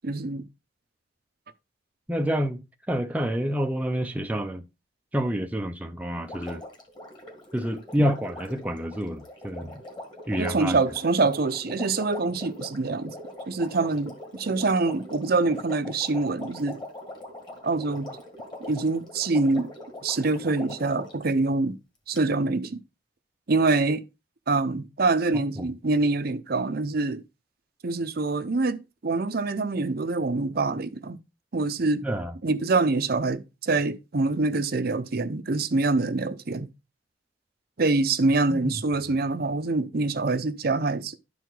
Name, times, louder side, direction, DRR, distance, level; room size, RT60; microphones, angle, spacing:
voice 1, 0.0-0.4 10.4-13.1 13.5-16.8 17.6-18.1 18.7-19.7 20.0-21.8 22.1-22.8 23.5-24.0 24.5-27.2 27.8-28.8 29.0-31.2 31.5-32.0 32.4-36.7 37.8-41.2, right 3 dB, 50° right, 0.7 m, -25 dB
voice 2, 2.1-4.6 5.1-6.6 7.5-9.8 10.3-10.8 25.3-25.7 32.0-32.4 38.5-38.8, equal, 10° right, 0.5 m, -28 dB
Water, 6.2-21.2 22.2-22.3, left 1 dB, 20° left, 1.8 m, -42 dB
11.0 x 4.7 x 3.9 m
head